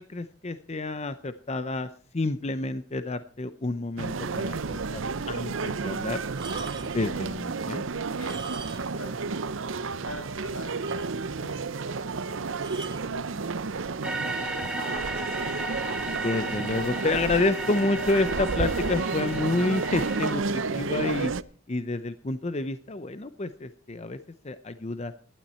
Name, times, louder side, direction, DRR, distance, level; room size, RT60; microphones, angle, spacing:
voice 1, 0.0-5.0 5.3-6.2 6.9-7.8 16.1-21.3 21.7-24.2 24.4-25.1, left 2 dB, 30° left, 11 dB, 0.6 m, -29 dB
sound 1, 4.0-21.4, right 4 dB, 65° right, 0.7 m, -31 dB
sound 2, 6.3-7.1 8.1-9.1 9.3-9.5 10.0-10.1 10.3-10.4 10.8-11.5 12.6-13.1 13.9-14.2, right 4 dB, 20° right, 1.4 m, -41 dB
voice 2, 8.2-9.3 9.9-10.9 11.2-14.0, left 2 dB, 80° left, 5 dB, 5.8 m, -47 dB
sound 3, 14.0-20.3, right 2 dB, 5° right, 2.3 m, -34 dB
18.5 x 12.0 x 4.3 m, 0.41 s
head